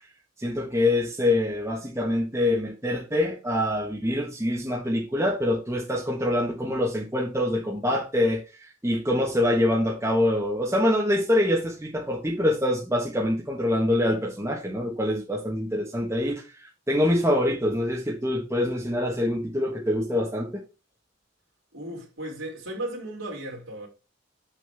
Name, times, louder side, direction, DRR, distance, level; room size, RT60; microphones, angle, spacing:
voice 1, 0.4-20.5, left 1 dB, 15° right, 1.3 m, -25 dB
voice 2, 21.7-23.9, right 1 dB, 75° right, 3.0 m, -35 dB
7.7 x 6.4 x 3.5 m
head